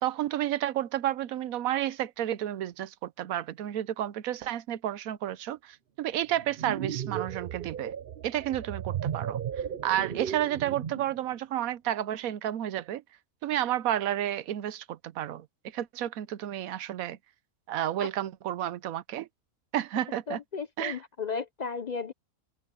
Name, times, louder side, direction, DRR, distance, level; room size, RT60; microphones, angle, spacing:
voice 1, 0.0-7.9 8.2-9.4 9.8-13.0 13.4-15.5 15.7-17.2 17.7-19.3 19.7-20.4 20.8-21.0, right 12 dB, 85° right, 1.1 m, -31 dB
sound 1, 6.4-11.2, right 9 dB, 50° right, 0.8 m, -35 dB
voice 2, 20.3-22.1, left 5 dB, 50° left, 0.5 m, -34 dB
open air
omnidirectional pair, 1.4 m